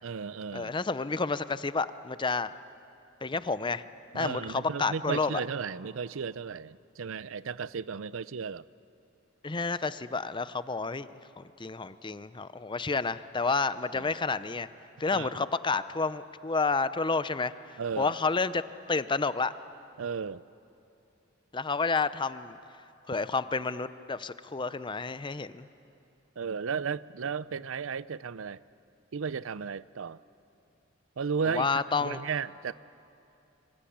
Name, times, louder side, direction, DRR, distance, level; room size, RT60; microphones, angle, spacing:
voice 1, 0.0-0.7 4.1-8.7 13.9-14.1 15.1-15.4 17.8-18.1 20.0-20.4 26.4-28.6 29.1-30.2 31.2-32.7, right 6 dB, 85° right, 18 dB, 0.5 m, -34 dB
voice 2, 0.5-2.5 3.2-3.8 4.1-5.4 9.4-11.1 11.4-14.7 15.0-18.6 18.9-19.5 21.5-22.6 23.1-25.7 31.5-32.2, left 4 dB, 25° left, 14 dB, 0.6 m, -30 dB
25.5 x 24.5 x 8.7 m, 2.7 s
head